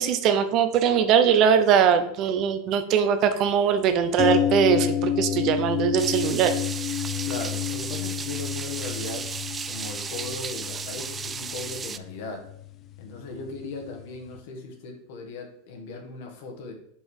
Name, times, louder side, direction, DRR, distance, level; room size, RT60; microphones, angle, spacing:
voice 1, 0.0-6.5, right 8 dB, 50° right, 9 dB, 0.8 m, -21 dB
sound 1, 4.2-14.1 14.4-14.5, left 11 dB, 40° left, 0.4 m, -30 dB
sound 2, 6.0-12.0, right 6 dB, 25° right, 0.4 m, -34 dB
voice 2, 7.2-9.3 9.6-12.5 13.0-16.7, left 3 dB, 70° left, 3 dB, 1.8 m, -38 dB
5.4 x 5.3 x 4.8 m, 0.71 s
hypercardioid pair, 105°, 0 cm